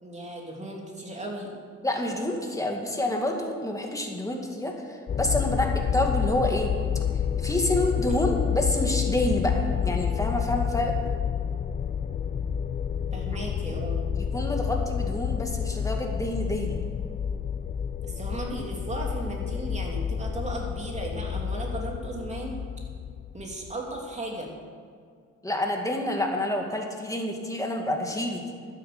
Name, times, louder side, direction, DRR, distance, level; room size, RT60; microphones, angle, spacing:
voice 1, 0.0-1.5 13.1-14.1 18.0-22.6 23.3-24.5, right 1 dB, 25° right, -1 dB, 3.2 m, -36 dB
voice 2, 1.8-6.7 7.4-10.9 14.2-16.8 25.4-28.4, left 1 dB, 10° left, 1 dB, 2.3 m, -28 dB
sound 1, 5.1-24.0, left 8 dB, 25° left, 0.3 m, -29 dB
12.5 x 9.9 x 6.9 m, 2.1 s
cardioid pair, 90°, 30 cm